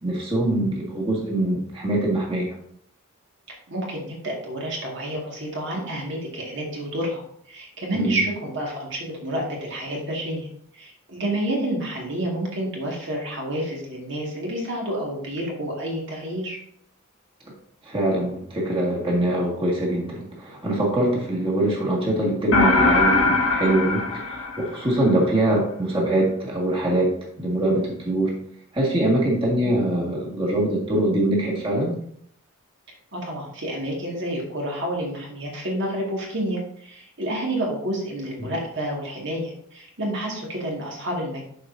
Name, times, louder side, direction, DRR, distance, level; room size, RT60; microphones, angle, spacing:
voice 1, 0.0-2.5 7.9-8.2 17.8-28.3 28.7-32.0 38.4-38.5, right 1 dB, 25° right, -4 dB, 1.8 m, -23 dB
voice 2, 3.5-7.2 7.5-10.5 10.7-16.6 33.1-41.4, right 1 dB, 60° right, -2 dB, 1.9 m, -29 dB
sound 1, 22.5-25.1, left 3 dB, 85° left, 1.1 m, -21 dB
11.5 x 4.9 x 2.6 m, 0.66 s
head